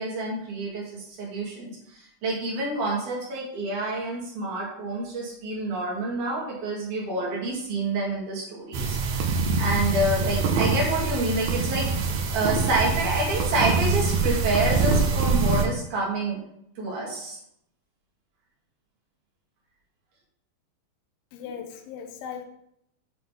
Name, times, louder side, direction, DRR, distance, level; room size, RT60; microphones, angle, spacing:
voice 1, 0.0-2.0 2.2-9.0 9.6-11.9 12.3-16.4 16.8-17.4, right 2 dB, 60° right, -4 dB, 3.0 m, -28 dB
sound 1, 8.7-15.7, right 4 dB, 80° right, 1.7 m, -24 dB
voice 2, 21.3-22.4, left 7 dB, 85° left, 5 dB, 2.4 m, -38 dB
8.6 x 3.7 x 3.6 m, 0.74 s
omnidirectional pair, 4.2 m